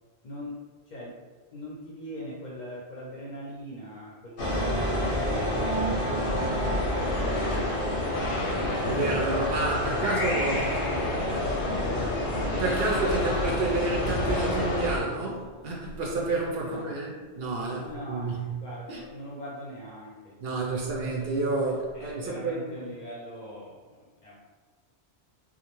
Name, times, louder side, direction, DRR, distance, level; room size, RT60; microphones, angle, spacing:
voice 1, 0.2-0.6 0.9-1.1 1.5-5.4 5.9-8.4 9.2-12.1 16.6-17.0 17.8-20.8 21.9-24.4, equal, 55° left, -5 dB, 0.6 m, -41 dB
sound 1, 4.4-15.0, left 1 dB, 90° left, 0.9 m, -29 dB
sound 2, 4.4-15.7, right 1 dB, 35° right, 0.4 m, -35 dB
voice 2, 8.9-10.6 12.6-18.6 18.9-19.0 20.4-22.7, right 3 dB, 70° right, -2 dB, 0.8 m, -29 dB
2.5 x 2.0 x 2.9 m, 1.4 s
omnidirectional pair, 1.1 m